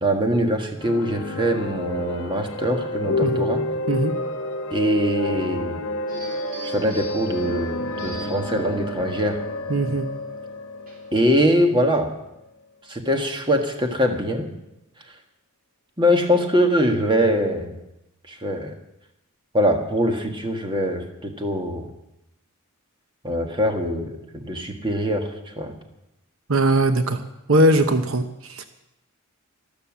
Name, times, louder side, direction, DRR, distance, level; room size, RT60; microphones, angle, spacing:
voice 1, 0.0-3.6 4.7-5.8 6.6-9.4 11.1-12.1 12.9-14.5 16.0-17.7 18.3-18.7 19.5-21.9 23.2-25.3 25.6-25.7, equal, 20° right, 4 dB, 1.6 m, -23 dB
sound 1, 0.8-12.5, left 1 dB, 60° left, 1.1 m, -30 dB
sound 2, 6.1-11.3, equal, 40° right, 3.7 m, -43 dB
voice 2, 9.7-10.1 26.5-27.2 27.5-28.6, right 1 dB, 65° right, 8 dB, 0.9 m, -20 dB
13.0 x 12.5 x 7.4 m, 0.89 s
head